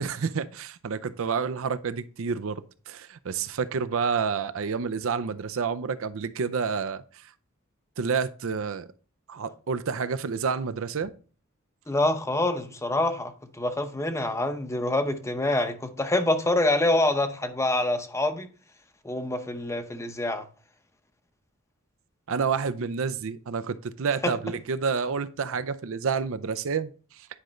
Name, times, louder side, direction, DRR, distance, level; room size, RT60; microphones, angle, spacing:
voice 1, 0.0-7.3 8.0-8.9 9.3-11.1 22.3-27.3, right 5 dB, 65° right, 0.5 m, -29 dB
voice 2, 11.9-18.5 19.0-20.4, left 2 dB, 15° left, 0.7 m, -26 dB
9.9 x 5.1 x 3.1 m
head